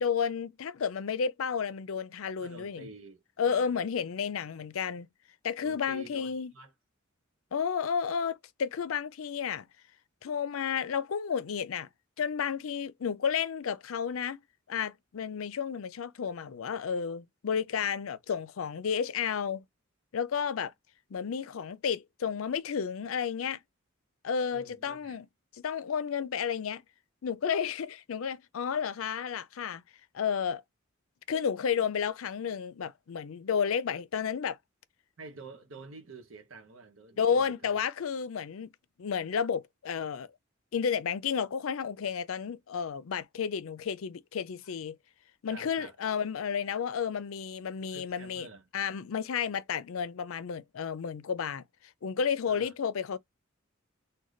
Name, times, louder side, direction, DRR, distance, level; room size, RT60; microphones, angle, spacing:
voice 1, 0.0-2.9 3.4-5.1 5.4-6.5 7.5-9.7 10.2-11.9 12.2-14.4 14.7-19.6 20.1-20.7 21.1-23.6 24.2-25.2 25.6-26.8 27.2-29.8 30.1-30.6 31.3-34.6 37.2-38.7 39.0-40.3 40.7-45.0 45.4-48.5 48.7-51.6 52.0-53.2, left 7 dB, 80° left, 0.5 m, -32 dB
voice 2, 2.4-3.9 5.6-6.7 24.5-25.2 35.2-37.8 44.6-44.7 45.5-46.0 47.9-48.7 52.5-52.7, right 3 dB, 70° right, 0.9 m, -49 dB
3.9 x 2.2 x 3.1 m
head